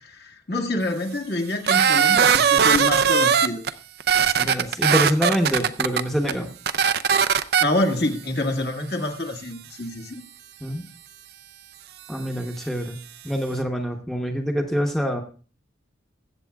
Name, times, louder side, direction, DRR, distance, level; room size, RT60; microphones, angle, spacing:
voice 1, 0.0-3.6 7.6-10.2, left 1 dB, 60° left, 3 dB, 1.7 m, -26 dB
sound 1, 1.7-3.7 4.0-6.0 6.3-6.4 6.7-7.6, right 7 dB, 55° right, 0.4 m, -19 dB
voice 2, 4.4-6.5 10.6-10.9 12.1-13.0 13.2-15.2, equal, ahead, 2 dB, 0.9 m, -25 dB
21.5 x 7.9 x 2.3 m, 0.38 s
head